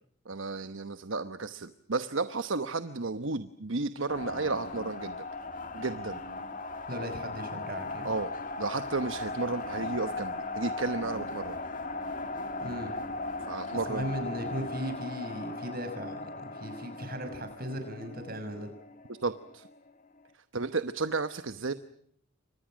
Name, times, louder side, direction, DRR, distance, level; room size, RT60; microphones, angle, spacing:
voice 1, 0.2-5.2 5.7-6.2 8.0-11.6 13.4-14.1 19.1-19.7 20.5-21.7, right 3 dB, 65° right, 11 dB, 1.1 m, -33 dB
sound 1, 4.1-19.9, left 2 dB, 40° left, 2.3 m, -38 dB
voice 2, 6.9-8.1 12.6-12.9 13.9-18.7, equal, 45° right, 8 dB, 5.9 m, -37 dB
29.5 x 25.5 x 6.3 m, 0.66 s
head